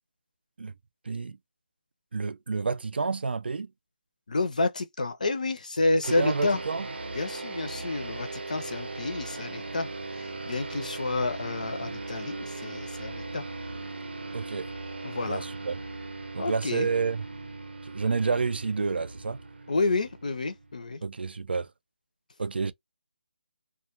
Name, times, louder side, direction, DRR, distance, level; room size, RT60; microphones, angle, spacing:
voice 1, 1.1-1.4 2.1-3.7 6.1-6.9 14.3-14.7 15.3-15.8 16.3-17.2 17.8-19.4 21.0-21.7 22.4-22.7, right 4 dB, 75° right, 0.4 m, -29 dB
voice 2, 4.3-6.6 7.1-9.9 10.2-13.4 15.0-15.5 16.4-16.9 19.7-21.0, left 3 dB, 45° left, 0.5 m, -29 dB
sound 1, 6.0-20.8, right 3 dB, 90° right, 0.8 m, -39 dB
2.3 x 2.2 x 2.8 m
hypercardioid pair, 180°, 6 cm